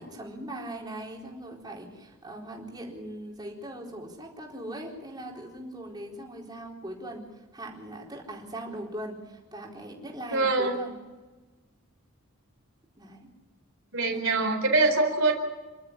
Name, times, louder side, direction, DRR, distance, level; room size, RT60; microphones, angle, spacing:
voice 1, 0.0-11.0 13.0-13.3 14.1-14.2, right 1 dB, 20° right, -1 dB, 4.2 m, -40 dB
voice 2, 10.3-10.8 13.9-15.3, right 3 dB, 60° right, 3 dB, 4.3 m, -24 dB
28.0 x 12.5 x 9.9 m, 1.2 s
head